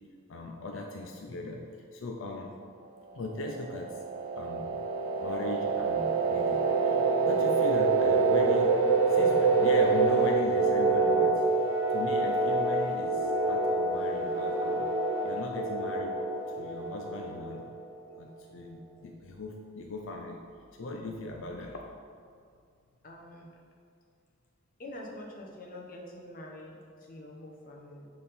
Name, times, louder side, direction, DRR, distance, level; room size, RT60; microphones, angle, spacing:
voice 1, 0.3-2.5 3.1-4.0 4.4-4.8 5.2-7.0 7.2-8.8 9.1-11.4 11.9-14.9 15.2-16.2 16.6-17.7 18.2-20.4 20.8-21.8, left 2 dB, 80° left, 1 dB, 0.5 m, -39 dB
sound 1, 3.3-17.9, right 3 dB, 85° right, 0.8 m, -26 dB
voice 2, 23.0-23.5 24.8-28.1, left 1 dB, 45° left, -1 dB, 1.0 m, -45 dB
7.7 x 3.6 x 4.2 m, 2.2 s
head